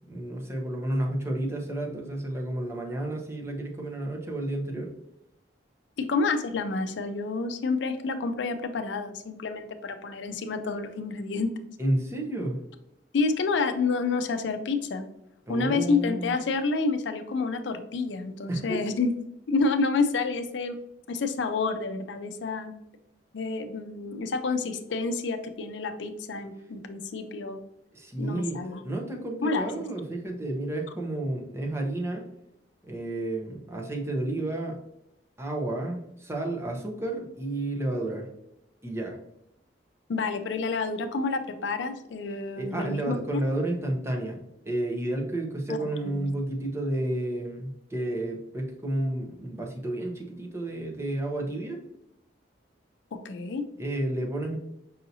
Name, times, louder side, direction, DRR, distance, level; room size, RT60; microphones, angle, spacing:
voice 1, 0.1-4.9 11.8-12.6 15.5-16.3 18.5-18.8 27.9-32.2 32.8-34.8 35.4-38.3 38.8-39.2 42.6-51.8 53.8-54.6, right 1 dB, 15° right, 0 dB, 0.7 m, -31 dB
voice 2, 6.0-11.7 13.1-15.0 15.5-19.2 19.5-20.8 21.1-22.7 23.3-27.6 28.2-28.8 29.4-29.9 40.1-43.4 45.7-45.9 46.2-46.3 53.1-53.6, left 4 dB, 75° left, 9 dB, 0.4 m, -29 dB
5.5 x 2.7 x 2.7 m, 0.81 s
head